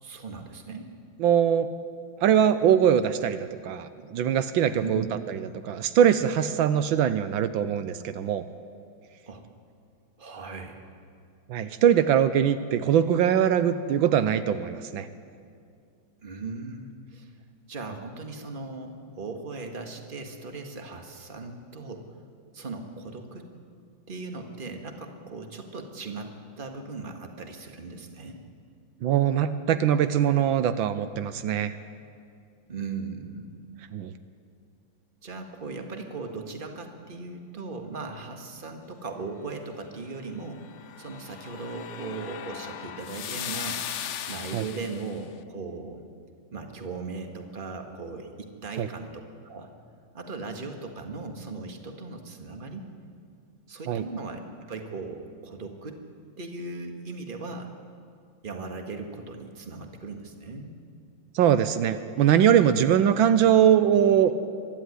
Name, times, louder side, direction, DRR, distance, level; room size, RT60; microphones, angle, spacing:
voice 1, 0.0-0.9 4.8-5.1 9.3-9.5 10.2-10.8 16.2-17.3 17.7-22.1 22.5-23.5 24.1-28.4 32.7-33.6 35.2-40.7 41.0-46.0 46.5-49.7 50.1-52.9 53.7-54.4 54.7-56.0 56.4-57.7 58.4-60.8, right 3 dB, 30° right, 5 dB, 1.7 m, -38 dB
voice 2, 1.2-1.7 2.2-3.4 3.6-8.4 11.5-15.1 29.0-31.7 33.9-34.1 44.5-44.6 48.8-48.9 53.9-54.0 61.3-64.3, right 9 dB, 80° right, 12 dB, 1.5 m, -22 dB
sound 1, 40.5-45.2, left 9 dB, 65° left, 0.7 m, -37 dB
23.5 x 13.0 x 9.7 m, 2.3 s
omnidirectional pair, 2.1 m